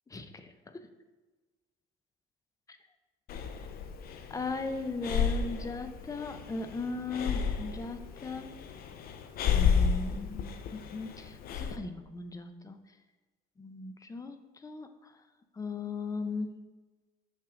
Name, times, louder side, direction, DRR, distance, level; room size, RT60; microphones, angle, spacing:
voice 1, 0.1-0.5 4.3-8.5 9.5-12.8 13.6-14.9 15.6-16.5, left 3 dB, 20° left, 8 dB, 0.6 m, -37 dB
Breathing, 3.3-11.8, left 6 dB, 65° left, 0.6 m, -32 dB
6.6 x 5.7 x 3.7 m, 1.2 s
cardioid pair, 110°, 17 cm